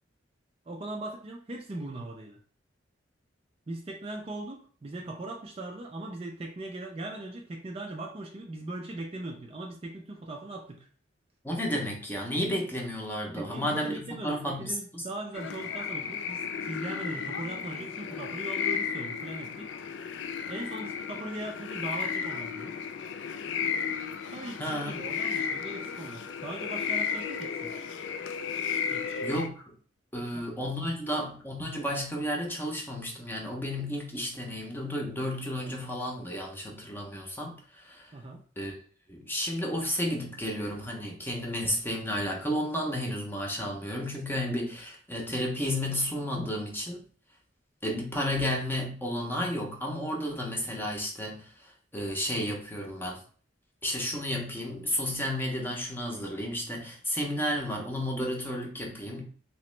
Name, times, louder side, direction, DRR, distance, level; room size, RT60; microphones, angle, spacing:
voice 1, 0.7-2.4 3.7-10.9 13.3-19.8 20.4-22.8 24.3-27.7 28.9-29.2 30.2-30.5 38.1-38.4, right 2 dB, 30° right, 1 dB, 0.4 m, -39 dB
voice 2, 11.4-15.0 24.6-25.0 29.2-29.6 30.1-38.1 38.6-38.8 39.1-47.0 47.8-53.2 53.8-59.2, equal, 10° left, -1 dB, 0.6 m, -32 dB
sound 1, 15.3-29.5, left 6 dB, 65° left, 0.3 m, -34 dB
3.0 x 3.0 x 3.1 m, 0.44 s
head